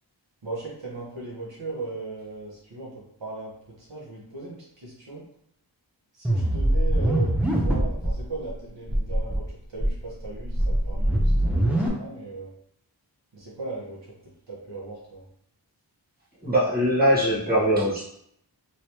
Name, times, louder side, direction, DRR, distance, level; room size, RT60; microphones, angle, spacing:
voice 1, 0.4-5.2 6.1-9.4 9.7-12.5 13.3-14.0 14.5-15.2, right 3 dB, 70° right, -6 dB, 1.2 m, -38 dB
sound 1, 6.2-8.1 8.5-8.6 8.8-9.4 9.8-11.9, right 1 dB, 5° right, 0.7 m, -23 dB
voice 2, 16.4-18.0, equal, 20° right, -8 dB, 1.3 m, -21 dB
3.2 x 3.0 x 2.9 m, 0.71 s
wide cardioid pair, 55°, 46 cm